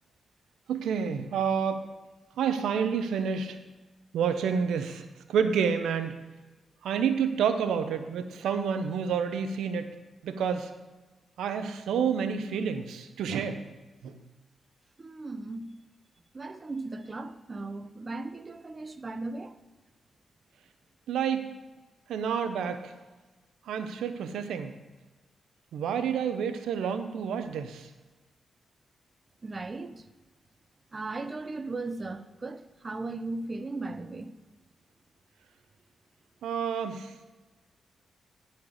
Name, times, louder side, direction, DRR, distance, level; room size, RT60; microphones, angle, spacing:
voice 1, 0.7-1.9 2.4-3.6 4.1-6.2 6.8-9.9 10.2-10.7 11.4-13.6 14.0-14.2 21.1-21.5 22.1-22.9 23.7-24.7 25.7-27.9 36.4-37.1, right 7 dB, 85° right, 0.8 m, -29 dB
voice 2, 15.0-15.7 16.3-19.5 29.4-30.0 30.9-34.3, right 3 dB, 35° right, 0.8 m, -37 dB
12.0 x 4.5 x 6.5 m
cardioid pair, 60°, 0 cm